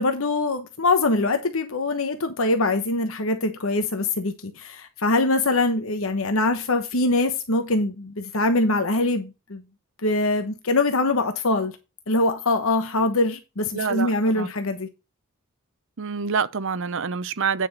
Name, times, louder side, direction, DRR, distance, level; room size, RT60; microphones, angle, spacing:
voice 1, 0.0-9.6 10.0-11.7 12.1-14.9, left 2 dB, 70° left, 1.1 m, -23 dB
voice 2, 13.7-14.5 16.0-17.7, right 6 dB, 65° right, 0.7 m, -27 dB
9.2 x 5.8 x 4.1 m
head